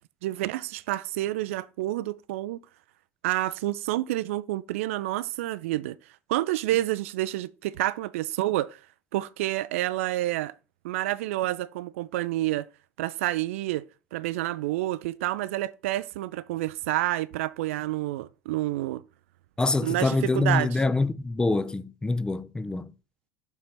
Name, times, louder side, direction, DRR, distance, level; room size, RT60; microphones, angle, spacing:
voice 1, 0.2-2.6 3.2-6.0 6.3-8.8 9.1-10.5 10.8-12.7 13.0-13.8 14.1-19.0 19.8-20.8, right 16 dB, 60° right, 0.3 m, -29 dB
voice 2, 19.6-22.9, left 3 dB, 10° left, 0.4 m, -25 dB
6.8 x 4.0 x 5.7 m
figure-of-eight pair, 70°, 8 cm